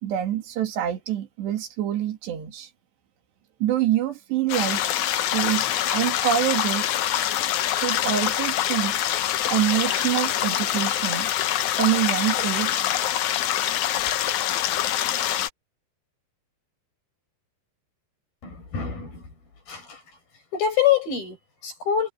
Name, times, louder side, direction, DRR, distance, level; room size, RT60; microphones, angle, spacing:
voice 1, 0.0-2.7 3.6-7.0 7.7-9.2 9.5-11.3 11.8-12.9, right 11 dB, 80° right, 4.6 m, -26 dB
sound 1, 4.5-15.5, left 12 dB, 80° left, 1.7 m, -25 dB
voice 2, 18.4-19.2 19.7-20.0 20.5-22.1, left 9 dB, 60° left, 8.4 m, -25 dB
omnidirectional pair, 4.9 m